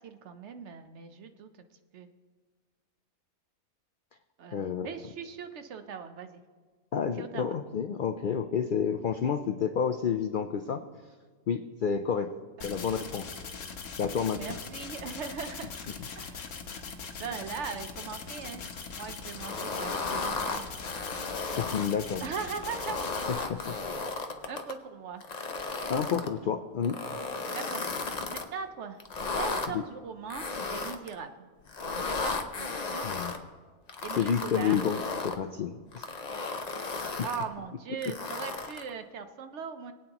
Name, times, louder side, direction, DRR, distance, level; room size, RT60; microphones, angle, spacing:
voice 1, 0.0-1.5 1.9-2.1 4.4-6.4 7.2-7.5 12.6-12.8 14.4-15.7 16.2-16.5 17.2-18.6 19.0-20.6 22.2-23.0 24.5-25.2 27.5-27.9 28.3-29.0 29.4-31.5 32.1-33.1 34.0-34.8 37.2-39.9, right 6 dB, 60° right, 8 dB, 0.9 m, -39 dB
voice 2, 4.5-4.9 6.9-10.8 11.5-12.3 12.6-13.2 14.0-14.4 21.6-22.2 23.5-23.8 25.9-27.2 29.7-29.8 33.0-33.4 34.2-36.0, left 7 dB, 90° left, 8 dB, 0.4 m, -30 dB
sound 1, 12.6-23.3, left 5 dB, 65° left, 1.3 m, -41 dB
sound 2, 19.4-21.9 22.5-24.7 25.2-26.3 26.8-28.5 29.0-29.7 30.3-31.1 31.7-33.4 33.9-35.4 35.9-37.4 38.0-38.9, left 3 dB, 40° left, 0.6 m, -35 dB
22.0 x 8.8 x 2.9 m, 1.5 s
omnidirectional pair, 1.5 m